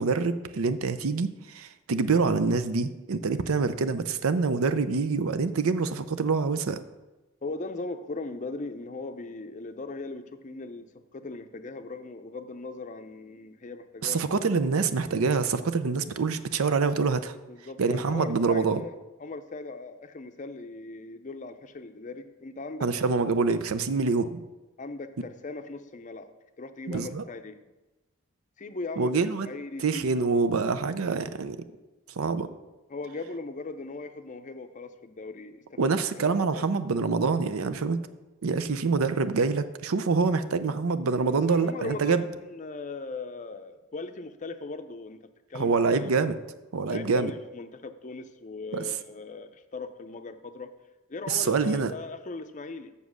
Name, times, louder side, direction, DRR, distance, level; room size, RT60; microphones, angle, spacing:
voice 1, 0.0-6.8 14.0-17.3 17.8-18.8 22.8-24.4 26.9-27.2 29.0-29.5 29.8-31.6 32.2-32.5 35.8-38.0 38.4-42.2 45.5-46.3 46.7-47.3 48.7-48.8 51.3-51.9, right 4 dB, 80° right, 12 dB, 0.6 m, -26 dB
voice 2, 7.4-14.4 17.5-22.9 24.8-26.3 26.6-27.6 28.6-30.3 32.9-36.7 41.5-46.1 46.8-50.7 51.1-52.9, left 3 dB, 35° left, 9 dB, 0.5 m, -39 dB
7.3 x 6.7 x 6.3 m, 1.1 s
head